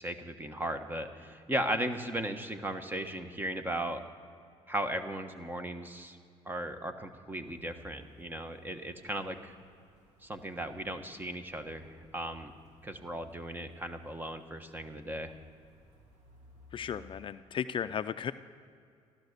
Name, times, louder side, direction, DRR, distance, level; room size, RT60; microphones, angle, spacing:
voice 1, 0.0-4.0 4.7-6.2 6.4-9.6 10.2-12.5 12.8-15.3, right 1 dB, 15° right, 8 dB, 1.2 m, -36 dB
sound 1, 7.4-17.3, right 1 dB, 75° right, 3.3 m, -60 dB
voice 2, 16.7-18.3, left 8 dB, 45° left, 12 dB, 0.4 m, -35 dB
15.5 x 12.0 x 6.7 m, 2.3 s
cardioid pair, 100°, 12 cm